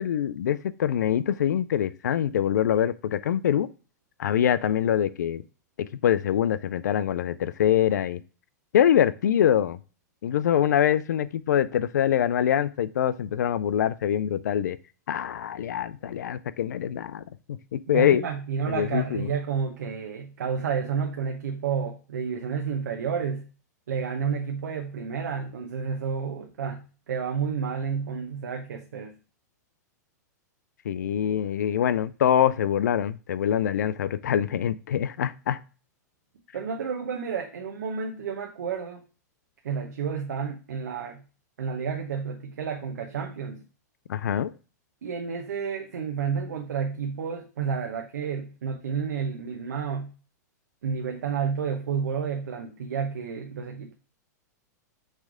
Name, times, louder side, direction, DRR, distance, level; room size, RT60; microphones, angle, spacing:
voice 1, 0.0-3.7 4.2-5.4 5.8-8.2 8.7-9.8 10.2-14.8 15.1-18.2 18.7-19.3 30.9-35.6 44.1-44.5, left 10 dB, 75° left, 15 dB, 0.4 m, -24 dB
voice 2, 17.9-23.5 23.9-29.2 36.5-39.0 39.6-41.2 41.6-43.6 45.0-50.1 50.8-53.9, right 6 dB, 75° right, 3 dB, 0.8 m, -30 dB
6.2 x 3.3 x 4.8 m, 0.36 s
hypercardioid pair, 105°, 10 cm